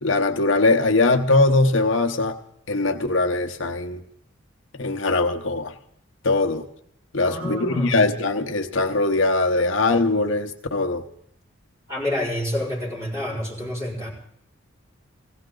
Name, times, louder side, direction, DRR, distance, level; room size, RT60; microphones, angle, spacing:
voice 1, 0.0-2.4 2.7-4.0 4.8-5.7 6.2-6.6 7.1-11.1, left 2 dB, 70° left, 6 dB, 0.9 m, -21 dB
voice 2, 7.2-8.1 11.9-14.1, left 1 dB, 15° right, -5 dB, 5.3 m, -28 dB
17.5 x 16.5 x 3.8 m, 0.72 s
head